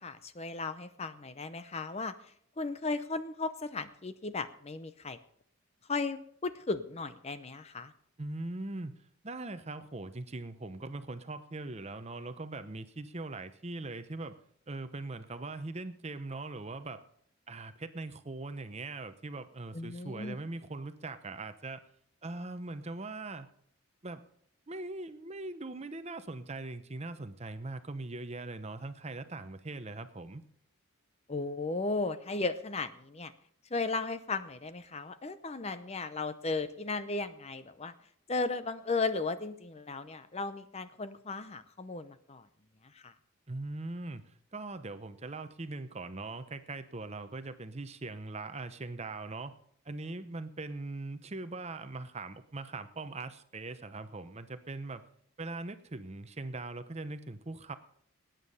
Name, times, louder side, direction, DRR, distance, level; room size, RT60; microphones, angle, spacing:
voice 1, 0.0-2.1 2.6-5.2 5.9-7.9 19.7-20.4 31.3-33.3 33.7-37.9 38.3-42.4 43.0-43.1, left 3 dB, 30° left, 12 dB, 0.6 m, -35 dB
voice 2, 8.2-8.9 9.2-14.3 14.7-17.0 17.5-21.8 22.2-23.5 24.0-24.2 24.7-30.4 43.5-49.6 49.8-55.0 55.4-57.8, right 2 dB, 30° right, 11 dB, 0.7 m, -41 dB
19.5 x 9.1 x 5.5 m, 0.66 s
head